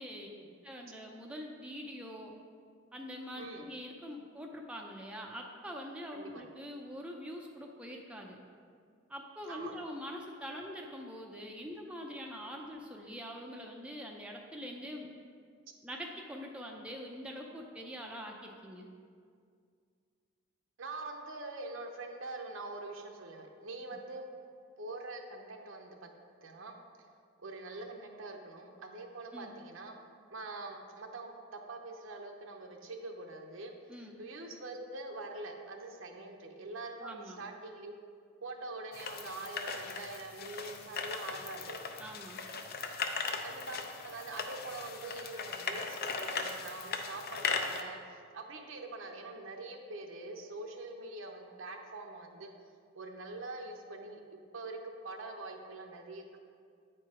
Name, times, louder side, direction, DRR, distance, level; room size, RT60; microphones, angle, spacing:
voice 1, 0.6-2.3 2.9-8.4 9.1-15.1 15.8-18.9 29.3-29.6 33.9-34.2 37.0-37.4 42.0-42.4, equal, 5° right, 0 dB, 0.5 m, -44 dB
voice 2, 6.1-6.4 9.5-9.7 20.8-24.2 24.8-26.1 26.4-26.8 27.4-30.0 30.3-38.0 38.4-41.8 43.4-52.5 52.9-54.2 54.5-56.4, right 2 dB, 65° right, 3 dB, 0.8 m, -44 dB
sound 1, 38.9-47.8, left 5 dB, 45° left, 0.5 m, -38 dB
8.9 x 4.6 x 4.9 m, 2.2 s
head